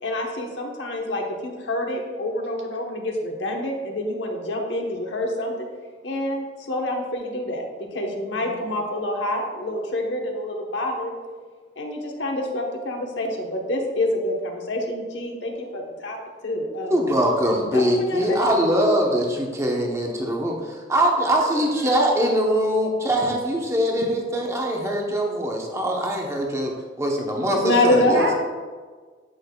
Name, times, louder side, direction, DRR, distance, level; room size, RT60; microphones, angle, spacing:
voice 1, 0.0-5.5 6.0-11.1 11.8-16.2 16.4-17.0 17.7-18.5 27.5-28.3, left 1 dB, 75° left, 1 dB, 1.1 m, -26 dB
voice 2, 8.4-8.8 21.4-21.5 27.8-28.3, right 1 dB, 75° right, 0 dB, 1.6 m, -30 dB
voice 3, 16.9-28.2, equal, 15° right, 0 dB, 0.9 m, -22 dB
8.8 x 6.2 x 2.3 m, 1.5 s
head